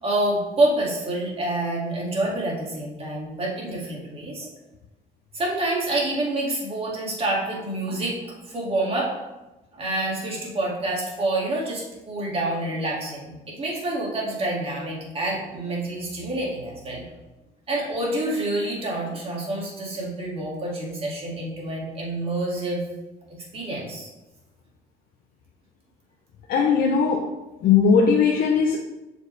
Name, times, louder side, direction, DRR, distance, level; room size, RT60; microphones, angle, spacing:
voice 1, 0.0-4.5 5.3-9.2 9.7-17.0 17.7-22.9 23.5-24.1, right 2 dB, 35° right, -3 dB, 2.1 m, -27 dB
voice 2, 26.5-27.3 27.6-28.8, left 6 dB, 60° left, 0 dB, 0.7 m, -19 dB
6.6 x 4.7 x 3.3 m, 1.0 s
cardioid pair, 110°, 17 cm